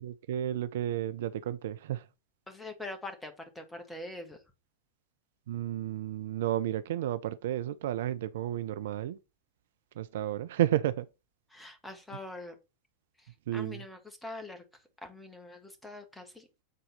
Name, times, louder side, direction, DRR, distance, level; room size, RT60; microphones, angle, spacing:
voice 1, 0.0-2.1 5.5-9.2 9.9-11.1 13.5-13.8, right 12 dB, 55° right, 0.5 m, -32 dB
voice 2, 2.5-4.4 11.5-12.6 13.2-16.5, left 2 dB, 5° left, 1.9 m, -44 dB
8.1 x 4.0 x 5.5 m
figure-of-eight pair, 90°, 0 cm